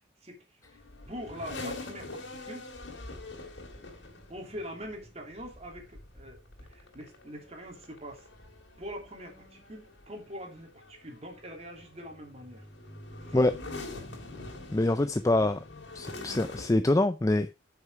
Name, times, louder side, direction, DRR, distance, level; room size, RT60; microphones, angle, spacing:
voice 1, 0.2-0.6 1.1-2.6 4.3-6.4 6.7-8.3 8.8-12.6 13.2-13.4, equal, 35° right, 3.0 m, -43 dB
sound 1, 0.6-16.7, left 2 dB, 85° left, 2.9 m, -45 dB
voice 2, 14.7-15.6 15.9-17.5, left 2 dB, 15° left, 0.4 m, -25 dB
9.2 x 6.7 x 4.8 m
head